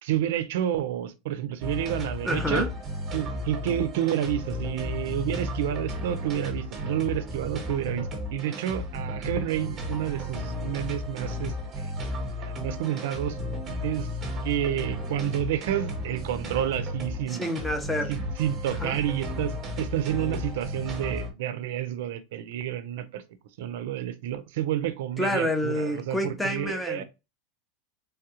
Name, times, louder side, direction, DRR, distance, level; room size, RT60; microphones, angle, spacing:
voice 1, 0.0-2.7 3.1-11.9 12.4-13.4 13.8-14.1 14.4-17.5 18.1-23.2 23.6-27.0, right 11 dB, 75° right, 0.4 m, -30 dB
sound 1, 1.6-21.3, left 1 dB, 25° right, 0.9 m, -34 dB
voice 2, 2.2-2.7 17.3-18.1 18.8-19.0 25.2-27.0, left 1 dB, 5° left, 0.6 m, -28 dB
3.2 x 2.3 x 2.8 m
supercardioid pair, 135°, 0 cm